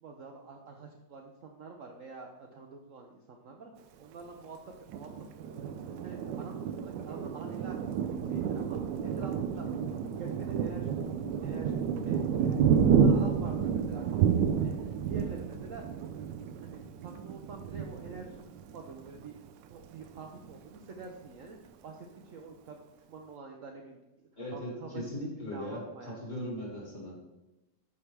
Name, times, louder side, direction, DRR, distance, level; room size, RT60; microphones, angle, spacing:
voice 1, 0.0-3.7 4.0-4.6 4.9-7.8 8.3-11.0 11.4-16.2 16.6-19.3 19.7-24.0 24.5-26.3, right 4 dB, 60° right, 2 dB, 0.8 m, -47 dB
Thunder, 4.9-19.2 19.7-19.9 20.2-20.8, right 7 dB, 85° right, 1.2 m, -30 dB
voice 2, 24.4-27.3, left 1 dB, 40° left, -3 dB, 2.4 m, -39 dB
11.0 x 4.7 x 3.3 m, 1.0 s
omnidirectional pair, 1.9 m